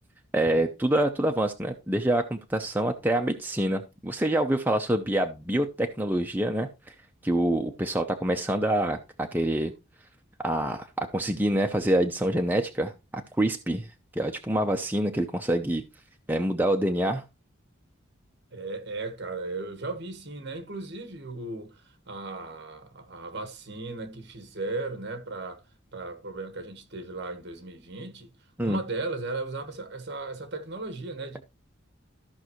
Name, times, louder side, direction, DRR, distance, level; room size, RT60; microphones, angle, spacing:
voice 1, 0.3-6.7 7.2-9.7 10.4-13.9 14.2-15.8 16.3-17.2 28.6-28.8, right 1 dB, 10° right, 0.7 m, -26 dB
voice 2, 18.5-25.6 25.9-28.3 28.6-31.4, right 3 dB, 55° right, 1.5 m, -36 dB
14.0 x 5.5 x 3.1 m
head